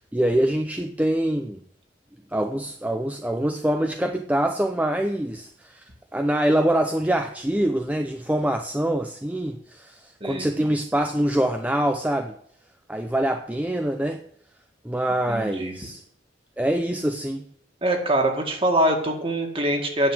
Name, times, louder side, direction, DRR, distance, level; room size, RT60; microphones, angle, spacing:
voice 1, 0.1-1.6 2.3-5.8 6.1-12.3 12.9-14.2 14.8-16.0 16.6-17.4, right 1 dB, 10° right, 6 dB, 0.6 m, -24 dB
voice 2, 15.3-15.7 17.8-20.1, right 1 dB, 30° right, 3 dB, 2.1 m, -23 dB
9.7 x 7.3 x 7.6 m, 0.66 s
head